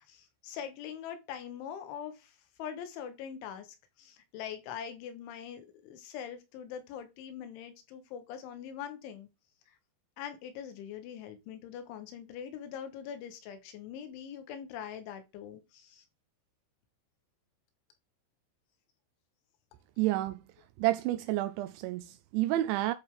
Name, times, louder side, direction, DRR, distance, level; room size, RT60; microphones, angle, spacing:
voice 1, 0.0-3.7 4.0-9.3 10.2-16.1, left 8 dB, 85° left, 3.6 m, -43 dB
voice 2, 20.0-20.4 20.8-22.9, right 16 dB, 85° right, 2.8 m, -30 dB
10.5 x 3.7 x 4.7 m
omnidirectional pair, 5.4 m